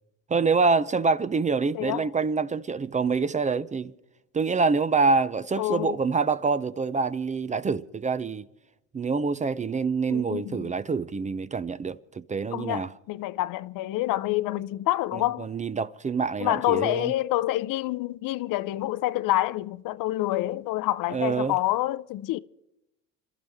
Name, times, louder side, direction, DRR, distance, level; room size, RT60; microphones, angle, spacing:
voice 1, 0.3-3.9 4.3-8.4 8.9-12.9 15.4-17.1 21.1-21.6, right 4 dB, 20° right, 0.5 m, -26 dB
voice 2, 1.7-2.1 5.6-6.0 10.1-10.7 12.5-15.5 16.4-22.4, left 16 dB, 60° left, 0.7 m, -27 dB
28.0 x 13.0 x 3.5 m
cardioid pair, 105°, 36 cm